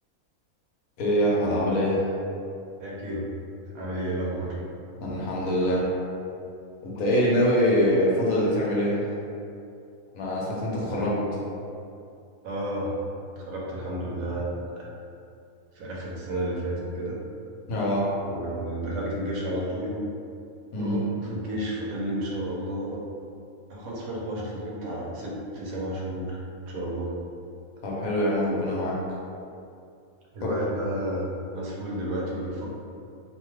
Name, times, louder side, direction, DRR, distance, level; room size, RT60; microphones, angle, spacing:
voice 1, 1.0-2.1 5.0-5.9 6.8-9.0 10.1-11.1 17.7-18.1 20.7-21.0 27.8-29.0 30.4-30.5, equal, 70° left, -5 dB, 1.1 m, -24 dB
voice 2, 2.8-3.3 3.7-4.6 10.7-11.3 12.4-13.0 13.4-14.9 15.7-17.2 18.2-20.0 20.8-23.0 23.7-27.1 30.3-32.7, right 1 dB, 75° right, -4 dB, 1.0 m, -32 dB
2.7 x 2.2 x 3.1 m, 2.5 s
omnidirectional pair, 1.5 m